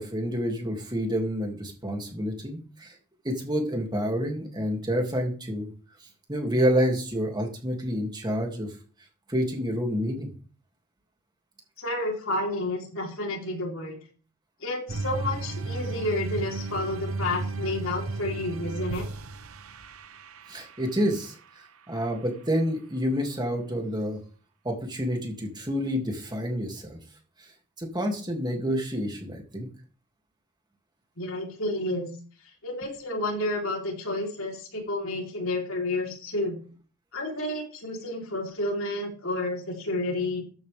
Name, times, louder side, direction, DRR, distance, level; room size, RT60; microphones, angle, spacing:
voice 1, 0.0-3.0 3.2-5.7 6.3-8.7 9.3-10.3 20.5-21.4 21.9-24.2 24.6-27.0 27.4-27.5 27.8-29.7, equal, 20° right, 2 dB, 2.7 m, -28 dB
voice 2, 11.8-14.0 14.6-19.0 31.2-32.1 32.6-36.6 37.1-40.4, left 2 dB, 65° left, 0 dB, 3.9 m, -30 dB
sound 1, 14.9-21.2, right 3 dB, 75° right, 0.9 m, -34 dB
14.5 x 9.1 x 3.6 m, 0.41 s
head